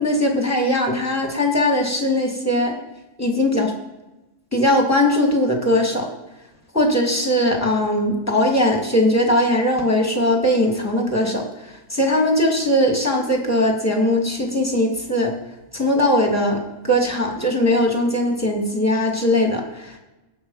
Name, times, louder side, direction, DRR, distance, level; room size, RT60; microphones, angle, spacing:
voice 1, 0.0-2.7 3.2-3.7 4.5-6.1 6.7-15.3 15.7-20.0, left 1 dB, 10° left, 1 dB, 2.4 m, -20 dB
19.0 x 6.3 x 5.6 m, 1.0 s
omnidirectional pair, 1.3 m